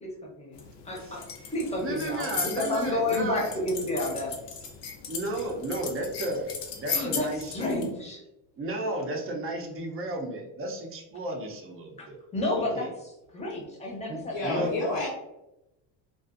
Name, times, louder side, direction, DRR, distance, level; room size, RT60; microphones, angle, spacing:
voice 1, 0.0-1.2 1.5-2.3 2.6-4.4 6.9-8.2 12.0-12.1 12.3-12.9 13.3-15.1, left 2 dB, 15° left, -2 dB, 0.7 m, -31 dB
sound 1, 0.5-7.9, left 5 dB, 60° left, 0.6 m, -37 dB
voice 2, 1.8-3.6 5.1-7.5 8.6-12.2 12.6-12.9 14.1-14.7, right 2 dB, 30° right, 1 dB, 0.5 m, -33 dB
voice 3, 14.2-15.1, left 2 dB, 85° left, -6 dB, 1.0 m, -30 dB
2.4 x 2.4 x 2.4 m, 0.93 s
cardioid pair, 110°, 46 cm